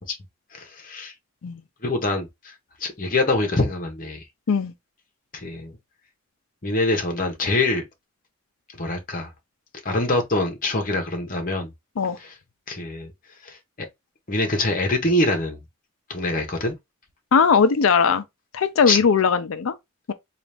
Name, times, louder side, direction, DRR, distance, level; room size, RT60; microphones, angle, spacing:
voice 1, 0.5-1.1 1.8-2.5 2.8-4.2 5.3-5.8 6.6-7.8 8.8-9.3 9.8-11.7 12.2-12.3 12.7-13.1 13.4-13.9 14.3-15.6 16.1-16.7 18.9-19.0, left 2 dB, 40° left, 1.0 m, -24 dB
voice 2, 17.3-18.2 18.5-19.7, left 5 dB, 70° left, 0.5 m, -19 dB
3.9 x 2.5 x 3.4 m
head